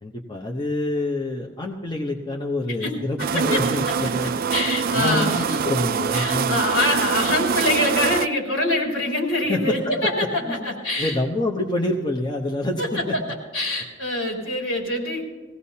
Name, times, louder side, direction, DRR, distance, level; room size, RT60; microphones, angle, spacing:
voice 1, 0.0-4.3 4.9-6.6 9.5-13.2, left 2 dB, 25° left, 0 dB, 0.9 m, -27 dB
sound 1, 3.2-8.3, right 6 dB, 50° right, 0.4 m, -24 dB
voice 2, 4.0-5.6 6.1-11.2 12.8-13.2 13.5-15.2, left 1 dB, 85° left, -1 dB, 3.4 m, -24 dB
20.5 x 16.5 x 2.8 m, 1.3 s
head